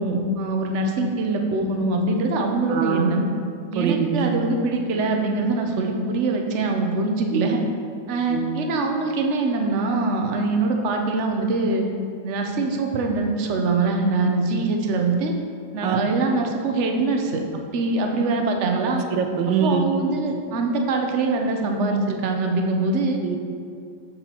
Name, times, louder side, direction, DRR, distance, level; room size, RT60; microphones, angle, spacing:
voice 1, 0.0-3.3 3.7-7.6 8.1-11.8 12.2-15.3 15.7-17.4 17.7-19.0 19.6-23.2, right 3 dB, 50° right, 3 dB, 1.0 m, -23 dB
voice 2, 2.7-3.2 3.7-4.3 7.3-7.5 8.3-8.6 15.8-16.2 18.8-19.9 23.2-23.4, right 7 dB, 90° right, 6 dB, 1.4 m, -24 dB
8.0 x 7.3 x 4.4 m, 2.3 s
omnidirectional pair, 1.9 m